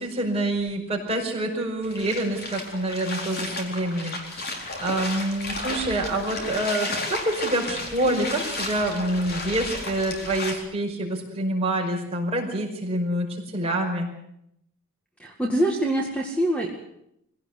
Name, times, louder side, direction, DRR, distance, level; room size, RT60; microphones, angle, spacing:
voice 1, 0.0-13.3 13.5-14.1, right 1 dB, 25° right, -1 dB, 5.5 m, -27 dB
sound 1, 1.8-10.5, left 2 dB, 45° left, 4.2 m, -33 dB
voice 2, 15.2-16.7, right 1 dB, 5° left, 1 dB, 2.1 m, -24 dB
23.5 x 17.0 x 8.1 m, 0.78 s
head